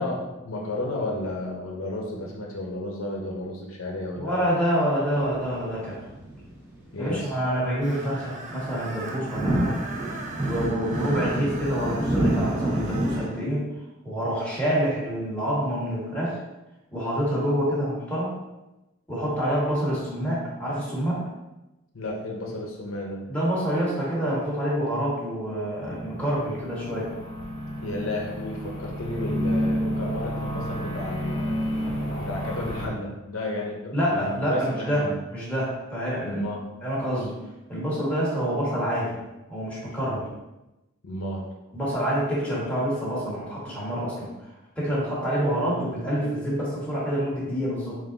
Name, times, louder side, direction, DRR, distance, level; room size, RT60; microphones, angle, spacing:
voice 1, 0.0-4.4 6.9-7.3 21.9-23.2 27.8-31.7 32.2-35.1 36.2-36.6 41.0-41.4, left 1 dB, 75° left, -1 dB, 0.7 m, -32 dB
voice 2, 4.2-6.1 7.0-9.8 10.4-13.6 14.0-16.4 16.9-18.3 19.1-21.3 23.3-27.1 33.9-35.0 35.3-36.4 36.8-37.4 37.7-39.1 39.5-40.3 41.7-44.3 44.8-48.0, equal, 5° left, -8 dB, 1.3 m, -27 dB
sound 1, 5.1-7.4 7.7-13.2, right 1 dB, 10° right, 1.0 m, -28 dB
Screech, 7.8-13.4, right 3 dB, 35° right, 0.5 m, -39 dB
sound 2, 25.7-32.9, equal, 20° left, 0.6 m, -30 dB
3.7 x 2.5 x 3.8 m, 0.99 s
head